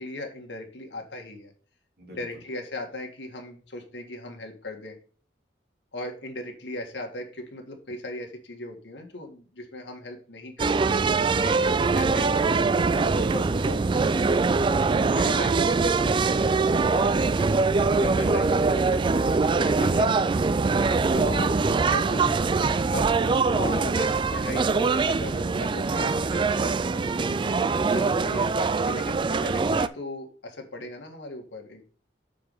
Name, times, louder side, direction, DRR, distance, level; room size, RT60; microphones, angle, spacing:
voice 1, 0.0-1.5 2.1-5.0 5.9-10.7 11.8-14.3 15.0-16.5 16.9-17.5 17.9-19.0 19.5-20.5 21.1-22.4 22.9-26.7 27.9-31.8, left 2 dB, 75° left, 2 dB, 1.8 m, -38 dB
sound 1, 10.6-29.9, right 4 dB, 25° right, 0.3 m, -23 dB
voice 2, 11.4-11.8 18.2-18.3 20.7-21.0 27.1-27.5, right 1 dB, 55° right, 0 dB, 3.0 m, -41 dB
6.8 x 4.7 x 5.4 m, 0.42 s
head